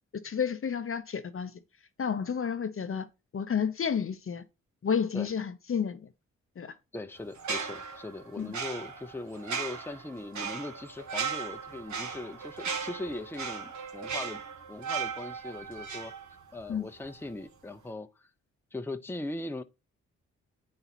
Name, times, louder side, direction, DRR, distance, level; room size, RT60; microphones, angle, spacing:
voice 1, 0.2-1.5 2.0-3.1 3.3-4.4 4.8-6.1 6.6-6.7 8.4-8.5 16.7-16.9, left 7 dB, 45° left, 0.8 m, -31 dB
voice 2, 6.9-14.4 14.7-16.1 16.5-18.3 18.7-19.6, left 2 dB, 5° left, 0.8 m, -40 dB
sound 1, 7.4-16.7 17.0-17.3, right 6 dB, 65° right, 1.4 m, -37 dB
8.7 x 4.1 x 4.1 m
supercardioid pair, 50°, 31 cm